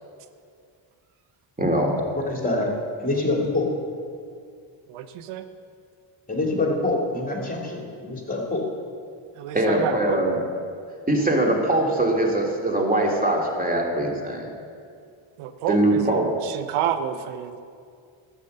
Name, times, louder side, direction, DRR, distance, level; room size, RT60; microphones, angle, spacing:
voice 1, 1.6-1.9 9.5-10.4 11.1-14.5 15.7-16.3, right 1 dB, 15° right, 0 dB, 2.7 m, -22 dB
voice 2, 2.3-2.7 3.0-3.7 6.3-8.6, left 2 dB, 15° left, -1 dB, 2.9 m, -25 dB
voice 3, 4.9-5.4 9.3-10.3 15.4-17.6, right 9 dB, 90° right, 10 dB, 0.7 m, -29 dB
12.0 x 8.7 x 6.7 m, 2.3 s
cardioid pair, 75°, 50 cm